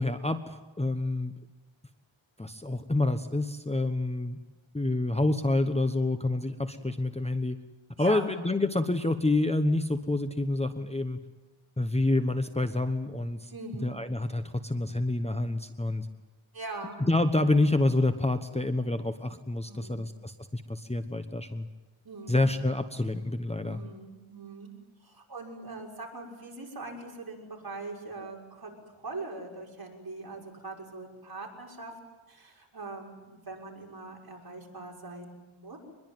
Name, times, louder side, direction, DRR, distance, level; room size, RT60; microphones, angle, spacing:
voice 1, 0.0-1.3 2.4-4.4 4.7-7.6 8.0-11.2 11.8-13.5 13.8-16.1 17.0-21.7 22.3-23.8, left 2 dB, 15° left, 7 dB, 1.1 m, -28 dB
voice 2, 8.0-8.3 13.5-13.9 16.5-17.0 19.6-20.0 22.0-22.5 23.6-24.7 25.0-31.9 32.3-35.8, right 3 dB, 45° right, -1 dB, 6.4 m, -42 dB
24.5 x 21.5 x 9.3 m, 1.1 s
wide cardioid pair, 90°, 49 cm